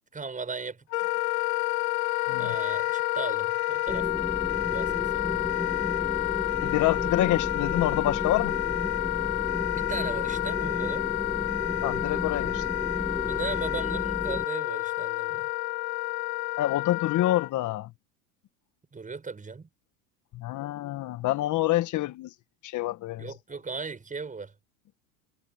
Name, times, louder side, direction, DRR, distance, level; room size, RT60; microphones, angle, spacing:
voice 1, 0.1-0.9 2.4-4.1 4.7-5.3 9.7-11.1 13.2-15.5 18.9-19.7 23.2-24.5, right 4 dB, 15° right, 7.6 m, -37 dB
Wind instrument woodwind instrument, 0.9-17.5, left 22 dB, 65° left, 2.0 m, -29 dB
Siren, 2.0-14.0, right 15 dB, 45° right, 3.1 m, -48 dB
sound 1, 3.9-14.4, left 1 dB, 5° left, 1.7 m, -34 dB
voice 2, 6.6-8.6 11.8-12.6 16.6-17.9 20.3-22.3 22.6-23.3, left 15 dB, 40° left, 1.6 m, -27 dB
supercardioid pair, 105°, 45 cm